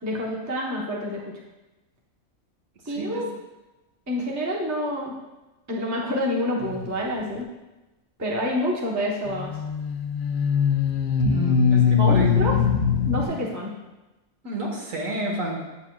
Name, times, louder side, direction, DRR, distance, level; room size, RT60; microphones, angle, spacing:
voice 1, 0.0-1.3 2.9-3.3 4.1-5.1 5.7-7.4 8.2-9.5 12.0-12.5 13.1-13.7, left 1 dB, 15° right, -3 dB, 0.8 m, -27 dB
voice 2, 2.9-3.2 11.3-12.3 13.2-13.3 14.4-15.5, right 2 dB, 70° right, -2 dB, 1.8 m, -30 dB
sound 1, 6.6-7.0 9.3-13.2, left 6 dB, 65° left, 0.7 m, -22 dB
8.2 x 7.1 x 2.3 m, 1.1 s
omnidirectional pair, 1.4 m